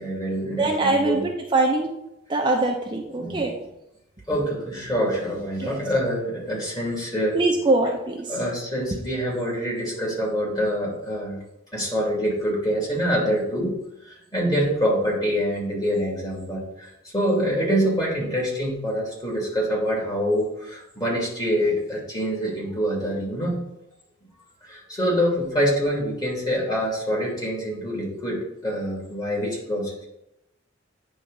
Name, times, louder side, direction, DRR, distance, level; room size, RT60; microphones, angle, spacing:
voice 1, 0.0-1.2 3.2-3.5 4.3-7.4 8.3-11.4 11.7-13.8 14.0-23.6 24.6-30.1, equal, 20° left, -4 dB, 2.7 m, -25 dB
voice 2, 0.6-1.9 2.3-3.5 5.6-5.8 7.3-8.4, right 2 dB, 25° right, 0 dB, 0.7 m, -23 dB
9.0 x 3.7 x 5.4 m, 0.88 s
head